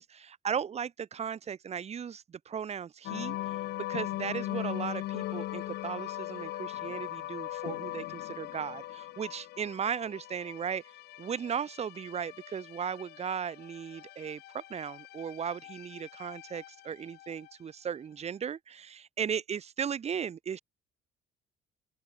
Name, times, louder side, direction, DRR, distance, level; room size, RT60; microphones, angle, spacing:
voice 1, 0.0-3.4 3.9-10.8 11.2-20.6, right 7 dB, 40° right, 1.8 m, -36 dB
sound 1, 3.0-17.5, left 15 dB, 75° left, 2.2 m, -40 dB
open air
cardioid pair, 110°, 17 cm